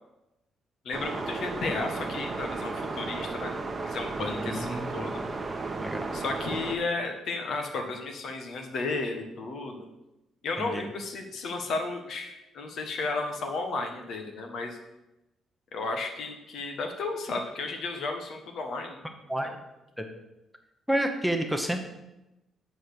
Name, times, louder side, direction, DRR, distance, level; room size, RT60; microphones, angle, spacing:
voice 1, 0.8-3.5 3.8-5.2 6.1-9.9 10.4-14.8 15.7-19.0 19.4-19.5, left 3 dB, 65° left, 4 dB, 1.3 m, -33 dB
sound 1, 0.9-6.7, right 3 dB, 30° right, 0.9 m, -34 dB
voice 2, 4.2-5.1 5.8-6.1 10.6-10.9 19.3-19.5 20.0-20.1 20.9-21.8, right 1 dB, ahead, 5 dB, 0.9 m, -30 dB
7.6 x 4.2 x 6.6 m, 0.94 s
cardioid pair, 90°, 0 cm